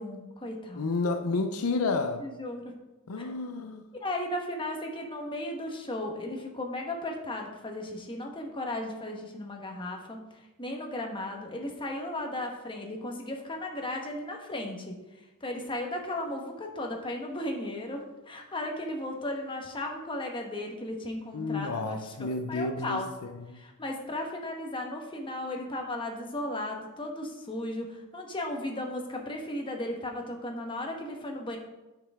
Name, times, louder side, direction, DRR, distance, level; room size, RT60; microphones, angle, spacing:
voice 1, 0.0-0.9 2.2-2.7 4.0-10.2 10.6-15.0 15.4-23.1 23.5-31.6, left 1 dB, 25° left, 1.2 m, -35 dB
voice 2, 0.8-2.2 3.1-3.8 21.3-23.0 23.4-23.6, left 3 dB, 80° left, 0.6 m, -30 dB
9.2 x 6.6 x 3.5 m
head